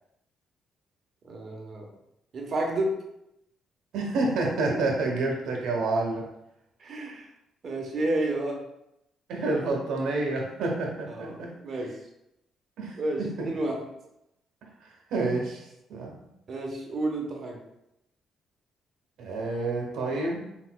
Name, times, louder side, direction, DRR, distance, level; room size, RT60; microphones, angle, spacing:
voice 1, 1.2-1.9 2.3-3.0 6.8-7.3 7.6-8.6 11.1-12.0 13.0-13.8 16.5-17.6, right 1 dB, 50° right, 1 dB, 1.0 m, -30 dB
voice 2, 3.9-6.3 9.3-11.5 12.8-13.5 15.1-15.6 15.9-16.2 19.2-20.4, right 2 dB, 80° right, 0 dB, 1.1 m, -28 dB
4.3 x 4.1 x 2.3 m, 0.84 s
cardioid pair, 90°, 0 cm